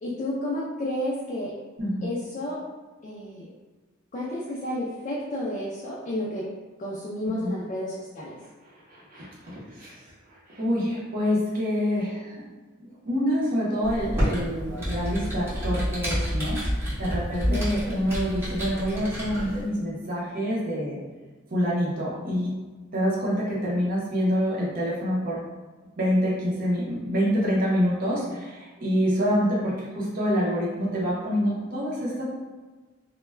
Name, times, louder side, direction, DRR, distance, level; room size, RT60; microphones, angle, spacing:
voice 1, 0.0-1.5 2.0-2.6 3.0-3.5 4.1-6.4 6.8-8.3 17.5-17.9, left 1 dB, 40° left, -7 dB, 0.4 m, -31 dB
voice 2, 1.8-2.1 7.4-7.5 8.9-10.0 10.5-12.4 12.8-16.6 17.0-21.0 21.5-22.5 22.9-25.4 26.0-32.2, equal, 45° right, -6 dB, 0.6 m, -26 dB
Computer keyboard, 13.8-19.6, equal, 10° right, 0.8 m, -29 dB
2.2 x 2.1 x 3.1 m, 1.3 s
head